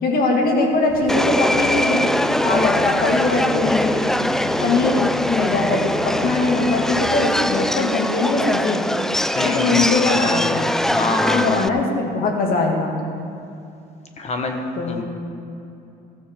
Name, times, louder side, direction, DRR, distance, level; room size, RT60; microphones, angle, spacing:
voice 1, 0.0-2.1 2.4-4.0 4.6-8.8 9.4-10.6 11.0-12.9 14.8-15.0, left 3 dB, 60° left, 1 dB, 2.3 m, -21 dB
sound 1, 0.9-7.1, left 4 dB, 90° left, 3.1 m, -33 dB
Subway metro underground, 1.1-11.7, left 1 dB, 5° left, 0.3 m, -22 dB
voice 2, 9.3-10.5 10.8-11.7 14.2-15.0, left 3 dB, 40° left, 4 dB, 1.2 m, -26 dB
14.5 x 13.5 x 3.7 m, 2.6 s
cardioid pair, 110°, 17 cm